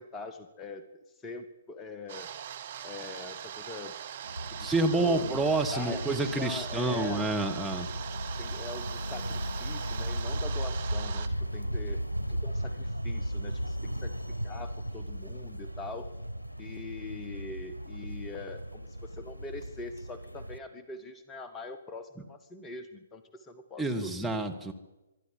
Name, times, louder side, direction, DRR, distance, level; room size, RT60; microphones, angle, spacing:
voice 1, 0.0-2.3 2.8-4.0 4.5-7.3 8.4-12.0 12.3-14.1 14.4-16.1 16.6-24.1, left 3 dB, 15° left, 10 dB, 1.3 m, -43 dB
sound 1, 2.1-11.3, right 9 dB, 45° right, 1.0 m, -41 dB
sound 2, 4.2-20.6, right 1 dB, 85° left, 0.9 m, -36 dB
voice 2, 4.6-7.9 23.8-24.7, right 2 dB, ahead, 1 dB, 1.5 m, -28 dB
24.5 x 11.5 x 10.0 m, 1.0 s
figure-of-eight pair, 130°, 0 cm